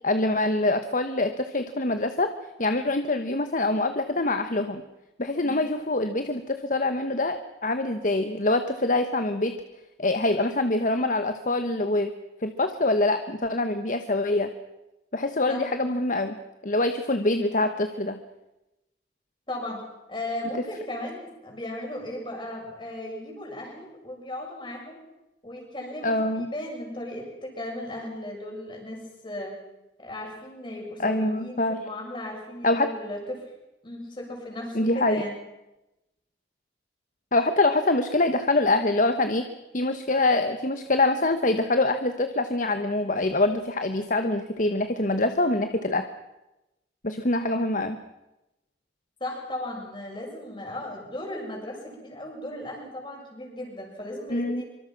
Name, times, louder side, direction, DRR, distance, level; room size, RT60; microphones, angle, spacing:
voice 1, 0.0-2.3 2.6-4.8 5.2-9.6 10.0-12.1 12.4-14.5 15.1-16.4 16.6-18.2 26.0-26.5 31.0-31.8 32.6-32.9 34.7-35.2 37.3-39.5 39.7-46.1 47.0-48.0 54.3-54.6, left 2 dB, 45° left, 8 dB, 1.2 m, -25 dB
voice 2, 19.5-19.8 20.1-25.0 25.4-29.6 30.0-33.4 33.8-35.4 49.2-54.6, left 1 dB, 25° left, 0 dB, 7.1 m, -36 dB
25.0 x 24.5 x 6.0 m, 0.96 s
head